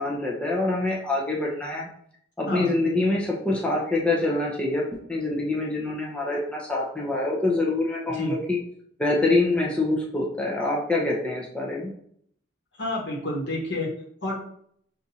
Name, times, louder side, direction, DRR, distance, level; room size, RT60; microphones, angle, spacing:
voice 1, 0.0-1.9 2.4-4.8 5.1-8.6 9.0-11.9, left 2 dB, 5° left, -3 dB, 0.6 m, -25 dB
voice 2, 12.8-13.9 14.2-14.3, left 1 dB, 70° left, -2 dB, 1.3 m, -29 dB
5.8 x 2.6 x 2.8 m, 0.66 s
head